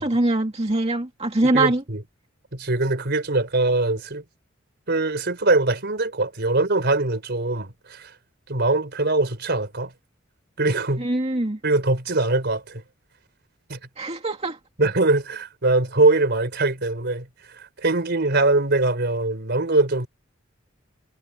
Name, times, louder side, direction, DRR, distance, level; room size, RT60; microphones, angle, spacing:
voice 1, 0.0-1.8 11.0-11.6 14.0-14.6, right 2 dB, 30° right, 2.2 m, -23 dB
voice 2, 1.4-2.0 2.5-4.2 4.9-8.1 8.5-9.9 10.6-11.1 11.6-12.8 13.7-13.8 14.8-20.1, right 2 dB, 55° right, 3.9 m, -22 dB
head